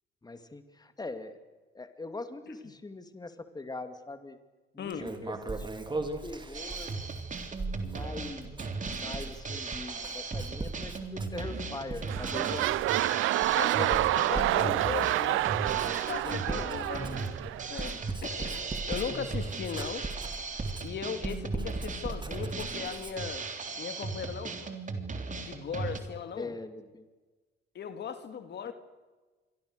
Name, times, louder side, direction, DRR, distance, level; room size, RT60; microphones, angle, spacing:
voice 1, 0.2-1.4 1.7-4.4 4.7-7.0 7.8-12.9 13.5-14.2 14.6-14.8 16.5-16.8 26.4-27.1, left 2 dB, 20° left, 9 dB, 2.5 m, -42 dB
Writing, 4.9-11.6 11.9-13.1 13.4-23.4, right 2 dB, 25° right, 3.0 m, -39 dB
Drum kit, 6.5-26.0, right 4 dB, 40° right, 3.5 m, -37 dB
sound 1, 11.5-11.8 12.0-17.9 18.5-18.6, right 16 dB, 90° right, 0.7 m, -28 dB
voice 2, 13.5-15.4 15.8-17.3 17.7-18.0 18.2-18.6 18.9-20.1 20.8-23.5 23.8-24.8 25.4-26.6 27.7-28.7, left 7 dB, 60° left, 9 dB, 2.2 m, -38 dB
27.0 x 24.0 x 6.7 m, 1.3 s
cardioid pair, 90°, 20 cm